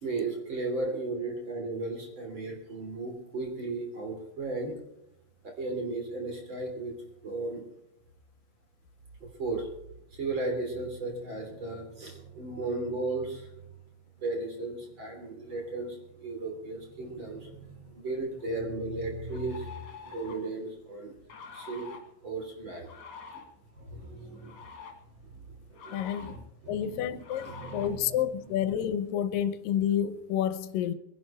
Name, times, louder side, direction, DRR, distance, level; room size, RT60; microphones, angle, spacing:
voice 1, 0.0-4.8 5.4-7.0 7.2-7.6 9.2-9.7 10.1-13.5 14.2-19.8 20.0-21.1 21.5-21.9 22.2-22.9 23.3-23.4 23.8-24.6 25.3-25.4 25.7-26.4 26.6-27.1 27.4-28.2 28.4-28.5, right 2 dB, 35° right, 3.7 m, -35 dB
sound 1, 18.4-18.5 19.3-20.5 21.3-22.0 22.8-23.4 24.3-24.9 25.7-26.4 27.2-27.9, left 5 dB, 60° left, 3.3 m, -46 dB
voice 2, 25.9-26.3 26.7-31.0, left 10 dB, 85° left, 2.5 m, -29 dB
22.5 x 11.0 x 4.4 m
omnidirectional pair, 3.8 m